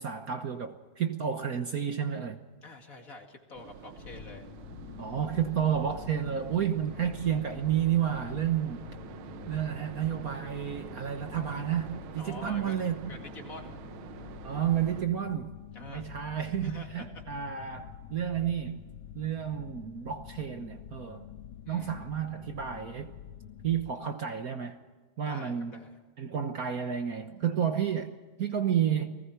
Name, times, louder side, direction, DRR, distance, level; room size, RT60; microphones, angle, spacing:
voice 1, 0.0-2.4 5.0-8.8 9.5-13.2 14.4-15.5 15.8-18.8 19.1-21.3 21.7-23.1 23.6-24.8 25.2-25.8 26.2-29.2, right 9 dB, 55° right, 7 dB, 1.3 m, -31 dB
voice 2, 2.6-4.5 6.9-7.1 12.2-13.8 15.7-16.1 16.6-17.2 21.6-22.0 25.3-26.0, left 2 dB, 45° left, 3 dB, 2.6 m, -47 dB
sound 1, 3.5-15.1, right 9 dB, 90° right, 1.8 m, -47 dB
sound 2, 4.0-23.9, left 10 dB, 85° left, 1.8 m, -47 dB
30.0 x 19.5 x 4.5 m, 1.4 s
omnidirectional pair, 2.2 m